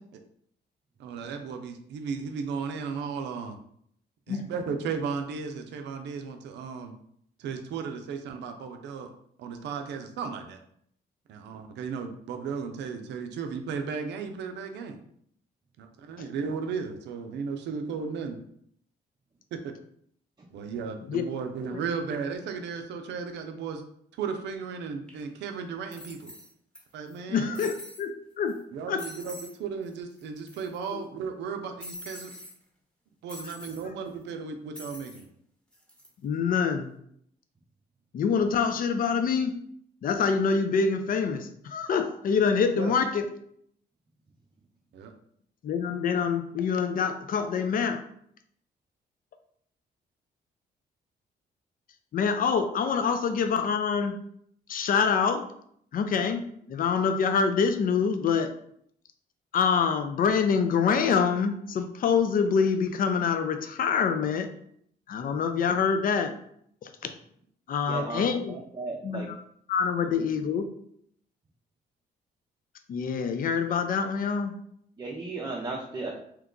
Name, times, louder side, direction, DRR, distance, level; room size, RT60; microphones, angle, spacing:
voice 1, 1.0-3.6 4.3-6.9 7.4-9.1 9.4-10.6 11.3-15.0 15.8-18.4 19.6-19.7 20.5-23.8 24.2-26.3 26.9-27.6 28.7-32.3 33.2-35.3 42.8-42.9 44.9-45.1, right 5 dB, 85° right, 5 dB, 0.5 m, -35 dB
sound 1, 25.1-25.2 25.9-26.8 27.1-27.2 27.5-28.1 28.5-28.6 29.0-29.6 29.8-29.9 30.2-30.9 31.8-32.5 33.3-33.8 34.7-35.2 35.7-36.1, equal, 5° left, 1.0 m, -44 dB
voice 2, 27.3-28.6 28.9-29.0 36.2-36.9 38.1-39.5 40.0-43.3 45.6-48.0 52.1-54.1 54.7-55.5 55.9-56.4 56.7-58.5 59.5-64.5 65.1-66.3 66.8-67.1 67.7-68.5 69.0-69.3 69.7-70.6 72.9-74.5, left 6 dB, 55° left, 8 dB, 0.4 m, -25 dB
voice 3, 67.9-69.3 70.2-70.3 75.0-76.2, right 3 dB, 25° right, -2 dB, 0.5 m, -35 dB
2.9 x 2.2 x 3.7 m, 0.68 s
cardioid pair, 80°, 18 cm